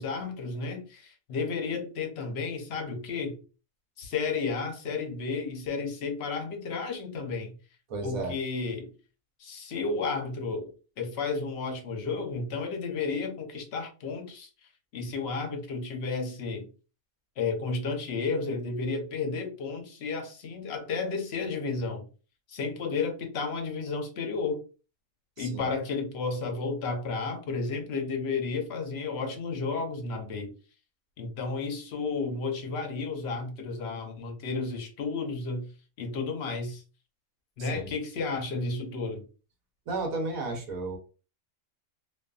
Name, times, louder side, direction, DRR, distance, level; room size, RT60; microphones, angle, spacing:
voice 1, 0.0-3.4 4.0-7.5 8.0-8.9 9.4-14.5 14.9-16.7 17.4-22.0 22.5-24.6 25.4-30.5 31.2-35.7 36.0-36.8 37.6-39.3, left 4 dB, 60° left, 0.8 m, -32 dB
voice 2, 7.9-8.4 25.4-25.7 37.6-37.9 39.9-41.0, right 3 dB, 85° right, 1.3 m, -33 dB
2.6 x 2.5 x 2.3 m
omnidirectional pair, 1.4 m